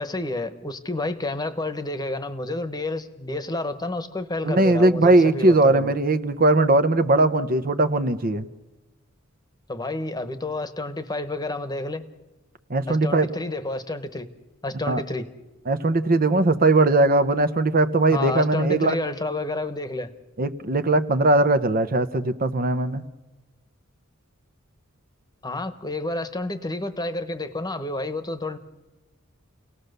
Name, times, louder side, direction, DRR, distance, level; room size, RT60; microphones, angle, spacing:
voice 1, 0.0-5.9 9.7-12.0 12.9-14.3 14.6-15.3 18.1-20.1 25.4-28.6, left 2 dB, 20° left, 10 dB, 1.2 m, -30 dB
voice 2, 4.4-8.5 12.7-13.3 14.9-15.0 15.7-19.0 20.4-23.0, right 2 dB, 45° right, 10 dB, 0.9 m, -19 dB
30.0 x 18.5 x 6.7 m, 1.1 s
head